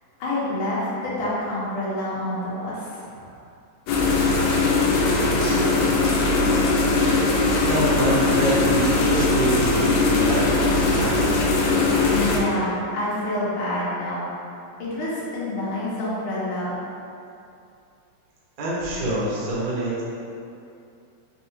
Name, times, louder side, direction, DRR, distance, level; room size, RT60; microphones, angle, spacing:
voice 1, 0.2-3.3 12.1-14.3 14.8-16.8, left 1 dB, 60° left, -9 dB, 1.4 m, -27 dB
sound 1, 3.9-12.4, left 3 dB, 85° left, 1.6 m, -20 dB
voice 2, 7.7-11.4 18.6-20.0, right 1 dB, 80° right, -8 dB, 1.0 m, -26 dB
5.0 x 3.3 x 3.0 m, 2.5 s
omnidirectional pair, 3.7 m